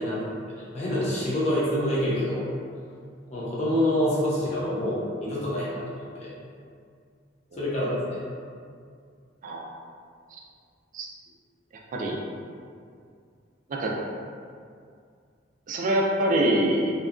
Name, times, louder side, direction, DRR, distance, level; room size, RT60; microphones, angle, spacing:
voice 1, 0.0-2.4 3.3-6.3 7.6-8.2, left 1 dB, 35° left, -7 dB, 0.7 m, -27 dB
voice 2, 15.7-16.9, right 1 dB, 45° right, -1 dB, 0.3 m, -24 dB
2.8 x 2.3 x 2.4 m, 2.2 s
head